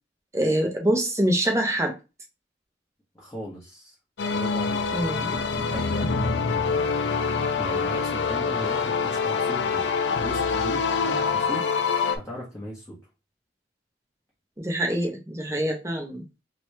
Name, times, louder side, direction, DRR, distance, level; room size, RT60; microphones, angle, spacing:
voice 1, 0.3-2.0 4.9-5.3 14.6-16.2, right 1 dB, 15° right, 0.7 m, -25 dB
voice 2, 3.1-3.9 4.3-7.0 7.6-9.9 10.2-11.7 12.1-13.0, equal, 15° left, 1.0 m, -38 dB
sound 1, 4.2-12.2, left 5 dB, 70° left, 0.5 m, -25 dB
3.0 x 2.9 x 3.2 m
head